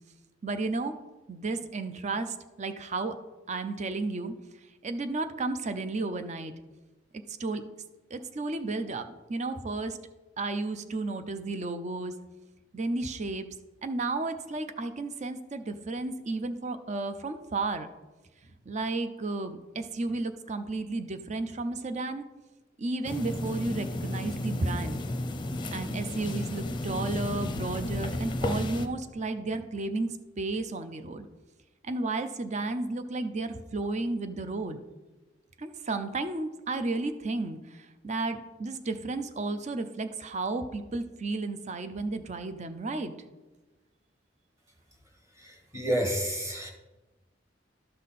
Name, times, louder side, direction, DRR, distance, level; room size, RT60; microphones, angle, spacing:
voice 1, 0.4-0.9 1.3-3.1 3.5-4.3 4.8-6.5 7.1-7.6 8.1-9.0 9.3-10.0 10.4-12.1 12.7-13.5 13.8-17.9 18.7-22.2 22.8-25.0 25.7-31.3 31.8-34.8 35.6-43.1, right 3 dB, 40° right, 10 dB, 0.6 m, -33 dB
sound 1, 23.0-28.9, left 1 dB, 25° left, 0.6 m, -33 dB
voice 2, 45.4-46.7, equal, 15° right, 2 dB, 1.5 m, -30 dB
12.5 x 5.7 x 4.2 m, 1.1 s
head